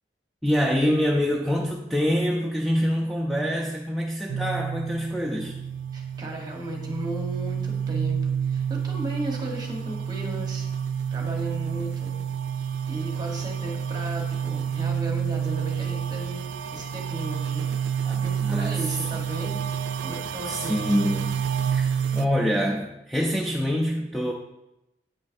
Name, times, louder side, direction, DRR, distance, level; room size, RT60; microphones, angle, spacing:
voice 1, 0.4-5.6 18.1-18.8 20.5-21.4 21.7-24.3, equal, ahead, -2 dB, 0.4 m, -25 dB
sound 1, 4.3-22.3, right 8 dB, 80° right, 0.4 m, -29 dB
voice 2, 5.9-10.6 11.1-12.3 12.9-17.7 18.0-19.6 20.0-21.0, right 1 dB, 25° right, 1 dB, 1.1 m, -35 dB
8.4 x 5.6 x 2.6 m, 0.92 s
head